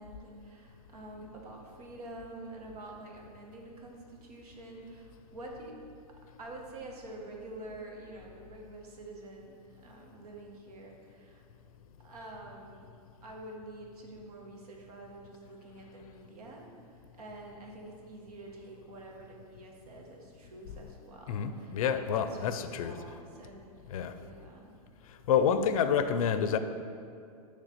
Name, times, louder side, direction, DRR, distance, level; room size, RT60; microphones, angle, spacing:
voice 1, 0.0-5.7 6.4-11.4 12.0-12.9 13.2-16.7 17.1-23.7 24.1-24.7, right 2 dB, 75° right, 0 dB, 1.3 m, -47 dB
voice 2, 21.3-23.0 23.9-24.2 25.3-26.6, left 7 dB, 65° left, 10 dB, 0.5 m, -28 dB
6.6 x 3.3 x 5.8 m, 2.4 s
hypercardioid pair, 130°, 20 cm